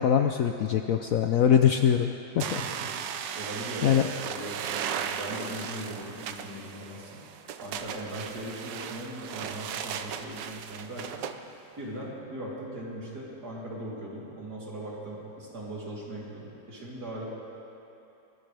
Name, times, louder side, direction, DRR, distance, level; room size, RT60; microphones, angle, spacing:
voice 1, 0.0-2.6 3.8-4.0, left 8 dB, 65° left, 5 dB, 0.8 m, -23 dB
sound 1, 2.4-11.4, right 8 dB, 80° right, 1.3 m, -36 dB
voice 2, 2.6-7.2 7.6-11.2 11.8-17.2, right 1 dB, 60° right, -6 dB, 3.8 m, -39 dB
22.5 x 19.0 x 3.4 m, 2.9 s
omnidirectional pair, 1.9 m